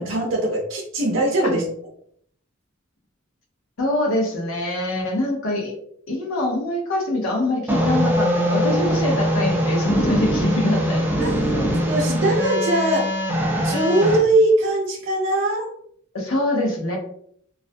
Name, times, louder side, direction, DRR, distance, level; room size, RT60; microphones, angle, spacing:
voice 1, 0.0-1.6 11.2-11.3 11.9-13.1 13.6-15.7, right 1 dB, 65° right, -2 dB, 0.5 m, -21 dB
voice 2, 3.8-5.7 6.1-11.1 11.5-11.7 12.1-12.3 16.1-17.0, left 1 dB, 80° left, 1 dB, 0.6 m, -24 dB
sound 1, 7.7-14.2, equal, 10° right, 0.3 m, -22 dB
2.4 x 2.1 x 2.5 m, 0.66 s
head